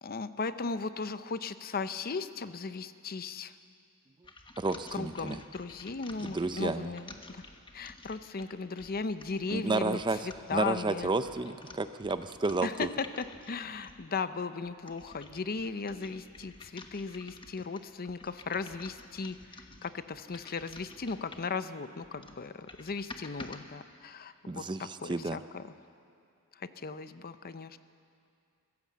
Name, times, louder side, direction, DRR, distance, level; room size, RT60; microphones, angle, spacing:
voice 1, 0.0-3.5 4.9-7.4 7.7-11.1 12.6-24.6 25.0-25.6 26.5-27.8, left 4 dB, 45° left, 12 dB, 0.7 m, -37 dB
sound 1, 4.2-14.1 14.6-21.6 22.0-23.6, left 3 dB, 25° left, 1.2 m, -51 dB
voice 2, 4.6-5.4 6.2-6.9 9.5-10.2 10.5-12.9 24.5-25.4, right 3 dB, 20° right, 11 dB, 0.5 m, -31 dB
24.0 x 16.0 x 7.4 m, 2.5 s
head